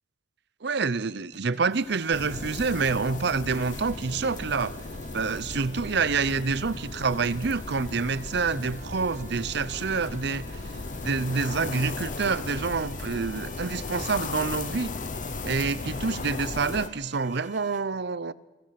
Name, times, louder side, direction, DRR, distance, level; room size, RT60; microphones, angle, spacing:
voice 1, 0.6-4.8 5.1-10.5 11.0-14.9 15.4-18.3, right 4 dB, 65° right, 0.7 m, -27 dB
sound 1, 1.3-17.8, right 3 dB, 40° right, 1.2 m, -50 dB
sound 2, 1.7-16.9, left 1 dB, 20° left, 5.3 m, -56 dB
sound 3, 2.1-16.9, left 3 dB, 45° left, 0.8 m, -36 dB
29.0 x 23.0 x 5.9 m
head